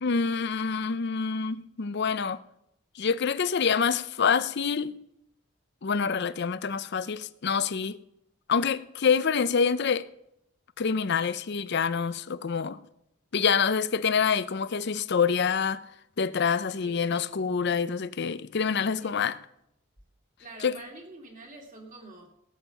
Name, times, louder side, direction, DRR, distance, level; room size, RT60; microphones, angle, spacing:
voice 1, 0.0-2.4 3.0-5.0 5.8-8.0 8.5-10.1 10.8-12.8 13.3-15.8 16.2-19.3 20.6-20.7, left 6 dB, 55° left, 0.5 m, -26 dB
voice 2, 16.8-17.3 19.0-19.1 20.4-22.3, right 2 dB, 40° right, 2.6 m, -46 dB
17.5 x 7.3 x 5.8 m
head